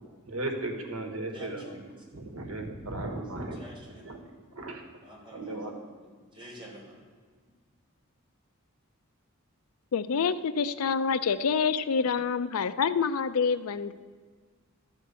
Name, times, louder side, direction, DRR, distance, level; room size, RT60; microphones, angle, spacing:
voice 1, 0.0-1.8 2.1-3.6 4.0-4.2 4.6-4.8 5.3-5.7, right 2 dB, 90° right, 4 dB, 1.3 m, -36 dB
voice 2, 1.3-2.0 3.5-4.0 5.0-6.9, equal, 25° right, -5 dB, 3.4 m, -48 dB
voice 3, 9.9-13.9, left 6 dB, 90° left, 14 dB, 0.5 m, -27 dB
13.0 x 4.5 x 8.1 m, 1.5 s
head